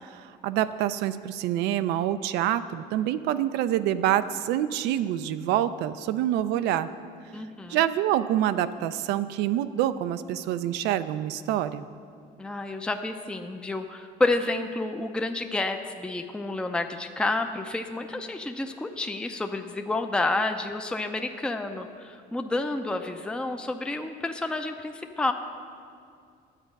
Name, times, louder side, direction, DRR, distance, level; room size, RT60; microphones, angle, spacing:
voice 1, 0.0-6.9 7.7-11.8, right 12 dB, 90° right, 12 dB, 0.4 m, -26 dB
voice 2, 7.3-7.8 12.4-25.3, left 2 dB, 5° left, 6 dB, 0.5 m, -30 dB
9.9 x 8.0 x 5.2 m, 2.3 s
cardioid pair, 110°, 17 cm